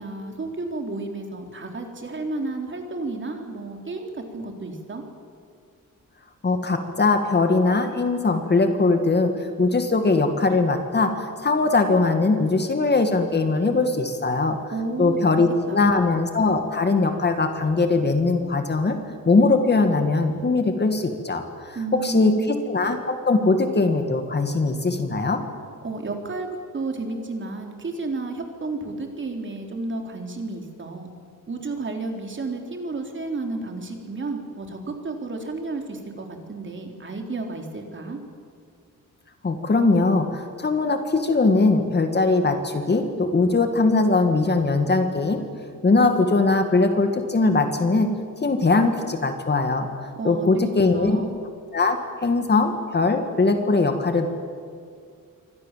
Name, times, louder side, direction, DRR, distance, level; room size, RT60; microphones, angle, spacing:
voice 1, 0.0-5.0 14.7-16.1 21.7-22.5 25.8-26.5 26.7-31.1 31.5-38.2 50.2-50.5 50.9-51.4, right 3 dB, 35° right, 3 dB, 3.7 m, -32 dB
voice 2, 6.4-14.6 15.0-19.0 19.3-25.4 39.4-45.4 45.8-48.1 48.4-49.9 50.2-51.2 51.7-54.3, left 3 dB, 30° left, 6 dB, 2.1 m, -21 dB
28.0 x 24.5 x 7.6 m, 2.2 s
wide cardioid pair, 165°, 32 cm